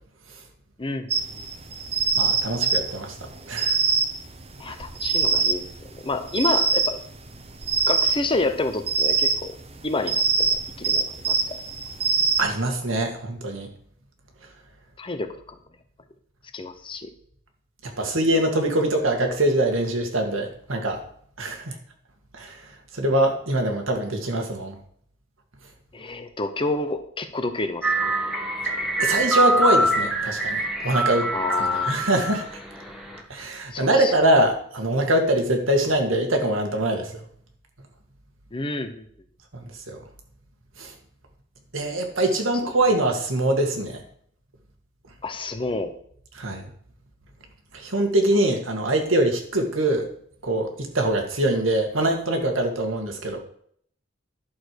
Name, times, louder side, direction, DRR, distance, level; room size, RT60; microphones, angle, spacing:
voice 1, 0.8-1.5 4.6-5.7 6.0-7.0 7.9-9.5 9.8-11.6 15.0-15.6 16.5-17.1 25.9-28.1 31.3-32.0 33.7-34.2 38.5-39.0 42.6-42.7 45.2-45.9, left 2 dB, 25° left, 9 dB, 0.9 m, -29 dB
sound 1, 1.1-12.4, right 5 dB, 30° right, 1.0 m, -24 dB
voice 2, 2.2-3.8 12.4-13.7 17.8-21.0 21.4-21.7 22.3-22.6 22.9-24.7 29.0-31.3 31.6-32.4 33.3-37.2 39.5-40.0 40.8-40.9 41.7-44.0 46.4-46.7 47.7-50.1 50.4-53.4, right 1 dB, 90° right, 3 dB, 2.0 m, -23 dB
sound 2, 27.8-33.2, right 1 dB, ahead, 1.7 m, -24 dB
11.5 x 6.8 x 4.7 m, 0.63 s
head